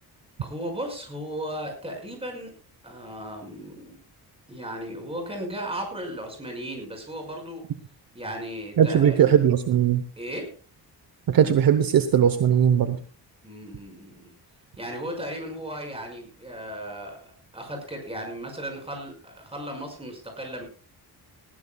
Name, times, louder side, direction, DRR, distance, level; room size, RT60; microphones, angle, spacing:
voice 1, 0.4-2.5 2.8-4.0 4.5-7.6 8.1-9.2 10.2-10.5 13.4-14.3 14.8-20.6, equal, 15° right, 3 dB, 5.5 m, -36 dB
voice 2, 8.8-10.0 11.3-13.0, right 9 dB, 60° right, 10 dB, 1.0 m, -19 dB
19.5 x 15.5 x 2.3 m, 0.38 s
wide cardioid pair, 165°, 40 cm